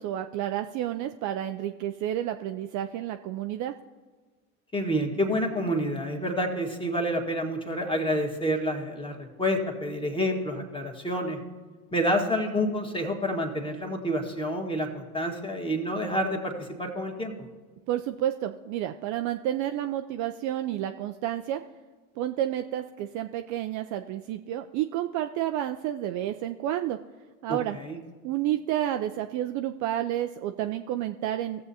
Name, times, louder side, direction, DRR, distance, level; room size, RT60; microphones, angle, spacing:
voice 1, 0.0-3.8 17.9-21.6 22.2-27.0 27.4-27.8 28.2-31.7, right 12 dB, 45° right, 7 dB, 0.4 m, -30 dB
voice 2, 4.7-11.4 11.9-17.3 27.5-28.0, equal, 10° left, 2 dB, 1.6 m, -28 dB
16.5 x 7.4 x 2.8 m, 1.4 s
hypercardioid pair, 75°, 44 cm